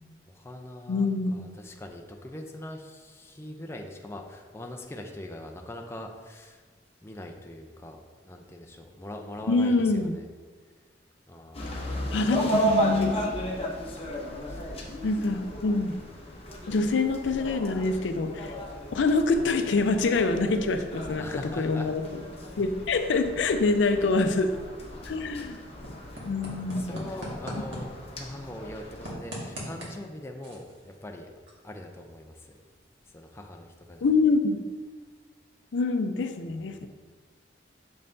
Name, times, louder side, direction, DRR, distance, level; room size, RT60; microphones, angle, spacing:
voice 1, 0.3-6.6 7.0-10.3 11.3-12.0 14.5-14.7 21.2-21.9 24.9-25.3 26.2-26.3 26.7-31.3 31.6-32.5 33.1-34.1 36.5-36.9, left 1 dB, 15° left, 3 dB, 0.4 m, -42 dB
voice 2, 0.9-1.5 9.5-10.2 12.1-13.2 15.0-16.0 16.7-18.5 18.9-22.0 22.6-24.5 25.1-25.6 26.2-27.0 34.0-34.6 35.7-36.9, left 3 dB, 75° left, 8 dB, 0.4 m, -25 dB
sound 1, 11.5-29.1, right 1 dB, 35° left, 0.8 m, -34 dB
sound 2, 23.7-35.4, equal, 85° right, 1.6 m, -44 dB
6.7 x 5.5 x 2.6 m, 1.4 s
head